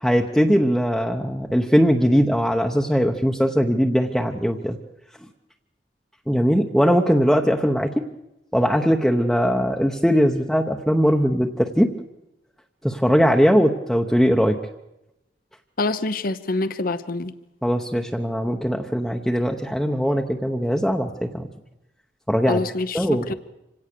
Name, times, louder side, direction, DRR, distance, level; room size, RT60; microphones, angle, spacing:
voice 1, 0.0-4.8 6.3-8.0 8.5-11.9 12.8-14.6 17.6-21.5 22.3-22.6 22.9-23.3, equal, ahead, 2 dB, 0.9 m, -20 dB
voice 2, 15.8-17.3 22.5-23.3, left 2 dB, 55° left, 12 dB, 0.8 m, -26 dB
26.0 x 17.5 x 6.7 m, 0.91 s
head